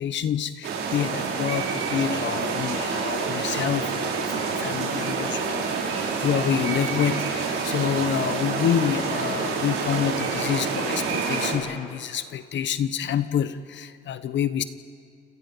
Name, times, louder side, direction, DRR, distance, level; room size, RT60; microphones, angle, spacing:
voice 1, 0.0-14.6, left 9 dB, 65° left, 12 dB, 1.2 m, -27 dB
sound 1, 0.6-11.5, right 5 dB, 85° right, 5.0 m, -27 dB
28.5 x 27.5 x 5.6 m, 2.3 s
cardioid pair, 90°, 20 cm